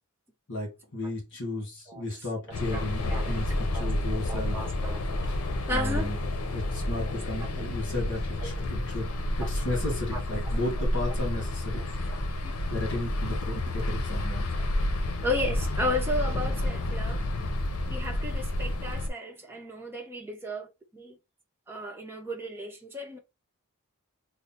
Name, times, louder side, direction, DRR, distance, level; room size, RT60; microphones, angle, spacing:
voice 1, 0.5-3.5 3.7-4.6 5.7-6.2 6.5-11.8 12.7-14.5, left 2 dB, 55° left, 1.6 m, -34 dB
voice 2, 1.9-3.9 4.3-5.1 5.7-6.1 7.4-7.5 8.4-8.7 9.4-9.5 10.1-10.2 11.7-11.9 12.4-12.8 15.2-17.2 17.9-21.2 21.7-23.2, left 1 dB, 10° right, 0.8 m, -34 dB
sound 1, 2.5-19.1, left 1 dB, 80° left, 0.7 m, -30 dB
3.2 x 2.0 x 4.0 m
head